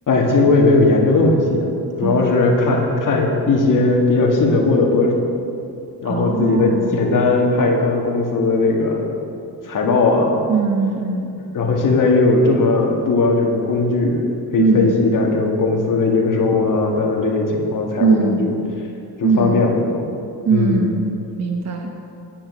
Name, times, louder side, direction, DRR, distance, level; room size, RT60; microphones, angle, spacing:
voice 1, 0.1-1.7 2.0-5.2 6.0-9.1 9.6-10.4 11.5-18.5 19.2-20.0 20.5-20.9, left 3 dB, 50° left, 0 dB, 2.0 m, -18 dB
voice 2, 2.0-2.3 6.0-7.2 10.5-11.3 14.6-15.0 18.0-18.6 19.2-19.7 20.4-21.1 21.4-21.9, right 4 dB, 40° right, 3 dB, 1.1 m, -20 dB
10.0 x 9.7 x 6.2 m, 2.6 s
cardioid pair, 125°, 41 cm